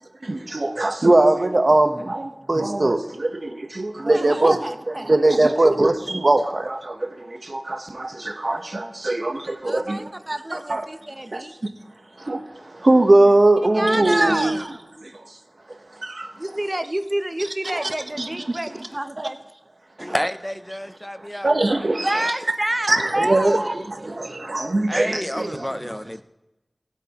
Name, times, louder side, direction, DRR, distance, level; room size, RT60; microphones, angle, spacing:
voice 1, 0.2-10.0 10.5-10.9 11.3-11.7 12.2-14.7 15.0-15.4 15.7-16.4 17.7-18.6 20.0-20.2 21.2-22.3 22.9-25.9, right 2 dB, 60° right, 1.0 m, -21 dB
voice 2, 4.1-5.2 9.6-11.5 13.7-14.6 16.4-19.4 20.0-20.1 22.0-23.7, right 1 dB, 30° right, 0.7 m, -28 dB
voice 3, 20.0-21.5 24.9-26.2, equal, 15° left, 0.5 m, -30 dB
19.5 x 8.2 x 3.0 m
wide cardioid pair, 40°, 0 cm